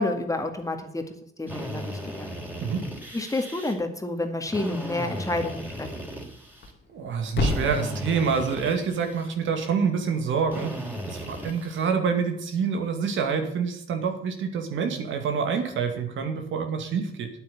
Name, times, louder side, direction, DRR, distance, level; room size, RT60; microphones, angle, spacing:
voice 1, 0.0-2.3 3.1-5.9, left 2 dB, 15° left, 5 dB, 2.0 m, -29 dB
Drill, 1.5-3.7 4.5-6.7 7.4-9.3 10.5-11.9, equal, 10° right, 4.0 m, -36 dB
Thump thud, 6.4-10.5, left 2 dB, 55° left, 2.0 m, -34 dB
voice 2, 6.9-10.7 11.1-17.3, right 6 dB, 75° right, 5 dB, 2.4 m, -27 dB
9.3 x 8.7 x 8.8 m, 0.67 s
cardioid pair, 90°, 20 cm